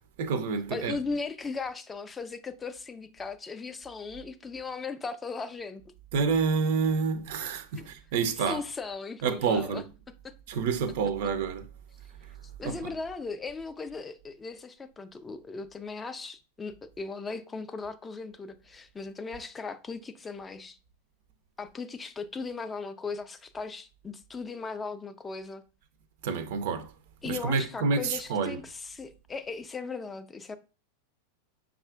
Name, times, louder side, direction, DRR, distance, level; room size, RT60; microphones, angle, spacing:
voice 1, 0.2-1.0 6.1-8.6 9.2-9.8 10.5-11.7 12.2-12.3 12.6-12.9 26.2-26.9 27.3-28.6, right 5 dB, 55° right, 0.4 m, -28 dB
voice 2, 0.7-5.8 7.8-7.9 8.5-9.8 10.2-10.3 12.6-20.8 21.6-25.6 27.2-30.6, left 4 dB, 15° left, 0.3 m, -37 dB
5.3 x 2.3 x 2.3 m
figure-of-eight pair, 90°, 0 cm